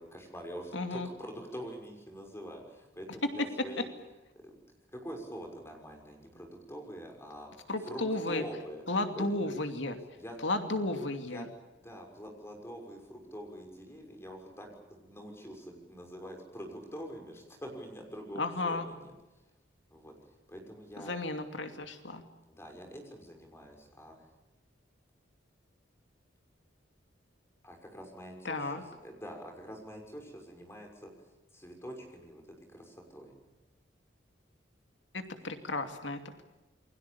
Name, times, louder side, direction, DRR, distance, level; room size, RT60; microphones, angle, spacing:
voice 1, 0.0-3.9 4.4-4.5 4.9-7.5 7.8-8.8 9.1-9.3 10.2-10.4 11.3-11.5 11.8-19.1 19.9-20.1 20.5-21.2 22.5-24.2 27.6-31.1 31.5-32.4 32.7-33.3, equal, 15° left, 2 dB, 6.2 m, -45 dB
voice 2, 0.7-1.1 3.4-3.5 7.7-8.4 8.9-10.0 10.4-11.5 18.4-18.9 21.0-22.2 28.4-28.8 35.1-36.4, left 2 dB, 75° left, 6 dB, 2.7 m, -33 dB
29.0 x 22.5 x 7.1 m, 1.1 s
head